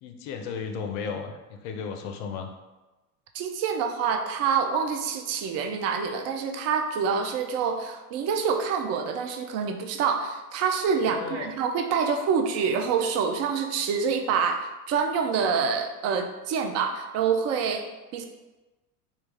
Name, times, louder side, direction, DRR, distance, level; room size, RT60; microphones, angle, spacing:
voice 1, 0.0-2.5 11.0-11.5, left 6 dB, 55° left, 5 dB, 0.6 m, -34 dB
voice 2, 3.3-17.9 18.1-18.3, right 6 dB, 35° right, 5 dB, 0.4 m, -26 dB
3.0 x 2.3 x 3.4 m, 1.1 s
hypercardioid pair, 85°, 46 cm